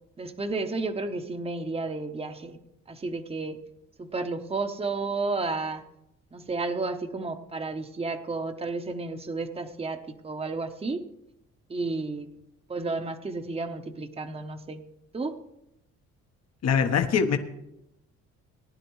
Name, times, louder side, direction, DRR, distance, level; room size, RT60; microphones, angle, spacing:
voice 1, 0.2-2.6 2.9-3.6 4.0-5.8 6.3-10.0 10.2-11.0 11.7-12.3 12.7-14.8 15.1-15.3, right 3 dB, 20° right, 7 dB, 0.9 m, -32 dB
voice 2, 16.6-17.4, left 6 dB, 60° left, 7 dB, 1.1 m, -22 dB
18.5 x 10.5 x 3.2 m, 0.86 s
cardioid pair, 90°, 30 cm